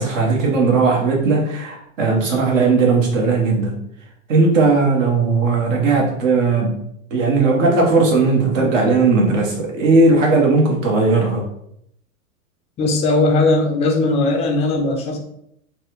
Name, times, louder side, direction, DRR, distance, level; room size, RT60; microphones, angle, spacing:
voice 1, 0.0-3.8 4.3-6.8 7.1-11.5, right 3 dB, 65° right, 0 dB, 1.2 m, -17 dB
voice 2, 12.8-15.2, left 2 dB, 15° left, 2 dB, 0.4 m, -18 dB
3.3 x 2.3 x 3.0 m, 0.74 s
hypercardioid pair, 100°, 42 cm